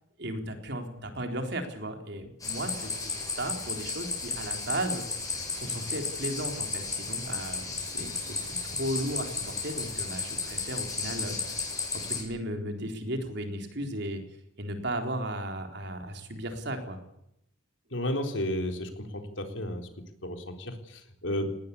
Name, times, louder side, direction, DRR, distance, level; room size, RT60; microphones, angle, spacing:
voice 1, 0.2-5.0 5.5-11.6 11.9-14.2 14.6-17.0, right 1 dB, 60° right, 5 dB, 4.0 m, -35 dB
sound 1, 2.4-12.2, left 4 dB, 20° left, 7.3 m, -34 dB
voice 2, 17.9-19.9 20.2-21.5, left 1 dB, 70° left, 5 dB, 3.9 m, -33 dB
19.5 x 19.0 x 8.6 m, 0.79 s
head